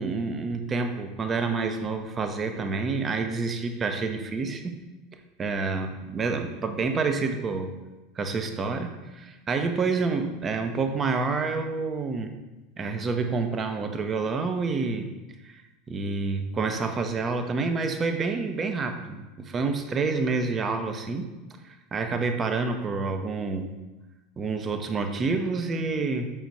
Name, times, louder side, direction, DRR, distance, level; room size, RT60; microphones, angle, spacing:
voice 1, 0.0-4.8 5.4-7.8 8.2-12.3 12.8-15.1 15.4-15.6 15.9-21.3 21.6-23.8 24.4-26.3, right 4 dB, 25° right, 6 dB, 0.7 m, -28 dB
7.2 x 6.0 x 2.7 m, 1.1 s
figure-of-eight pair, 75°, 0 cm